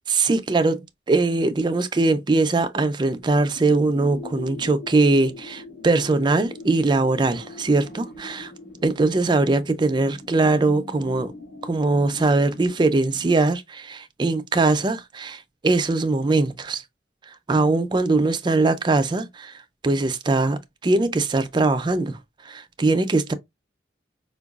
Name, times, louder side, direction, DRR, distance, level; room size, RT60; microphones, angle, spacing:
voice 1, 0.1-0.8 1.1-8.5 8.8-11.3 11.6-16.8 17.3-19.5 19.8-22.2 22.4-23.3, right 3 dB, 25° right, 0.4 m, -21 dB
sound 1, 3.2-13.4, left 2 dB, 65° left, 1.9 m, -41 dB
4.5 x 2.2 x 2.3 m
head